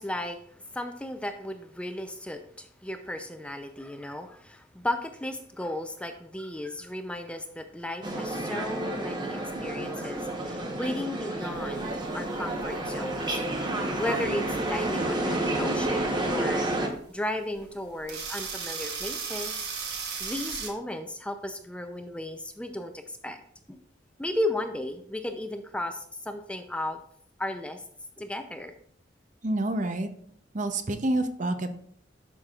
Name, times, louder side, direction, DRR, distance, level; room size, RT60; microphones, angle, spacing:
voice 1, 0.0-16.6 17.1-19.7 20.2-23.4 23.7-23.8 24.2-27.0 27.4-27.8 28.2-28.7, left 1 dB, 5° left, 6 dB, 0.5 m, -35 dB
sound 1, 8.0-16.9, right 1 dB, 25° right, 1.0 m, -30 dB
sound 2, 11.4-20.7, right 5 dB, 60° right, 1.3 m, -38 dB
voice 2, 29.4-30.1 30.5-31.7, right 1 dB, 45° right, 8 dB, 0.7 m, -28 dB
11.5 x 5.8 x 2.4 m, 0.62 s
head